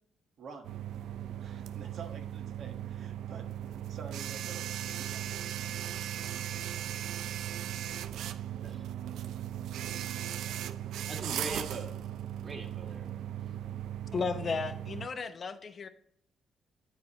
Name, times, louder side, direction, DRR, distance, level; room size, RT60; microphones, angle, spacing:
voice 1, 0.4-0.7 1.4-3.4 3.9-5.4, right 5 dB, 65° right, 3 dB, 1.3 m, -48 dB
sound 1, 0.6-15.1, right 11 dB, 85° right, 0.4 m, -38 dB
voice 2, 8.2-8.8 10.7-13.8, right 2 dB, 35° right, 2 dB, 1.9 m, -44 dB
voice 3, 14.1-15.9, left 5 dB, 45° left, 10 dB, 0.8 m, -34 dB
9.6 x 4.6 x 4.1 m, 0.70 s
cardioid pair, 90°, 0 cm